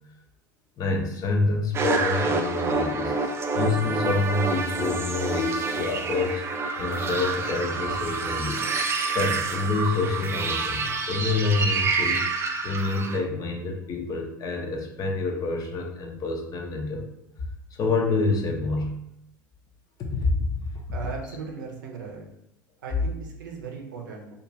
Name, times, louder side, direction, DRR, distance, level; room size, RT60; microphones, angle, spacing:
voice 1, 0.8-6.4 6.8-8.8 9.1-17.1 17.8-19.0 20.0-20.3, left 3 dB, 35° left, 2 dB, 0.5 m, -27 dB
sound 1, 1.7-13.2, right 4 dB, 25° right, 0.3 m, -28 dB
voice 2, 20.9-22.2 22.8-24.3, right 5 dB, 70° right, 1 dB, 0.6 m, -37 dB
2.4 x 2.4 x 3.0 m, 0.79 s
figure-of-eight pair, 75°, 11 cm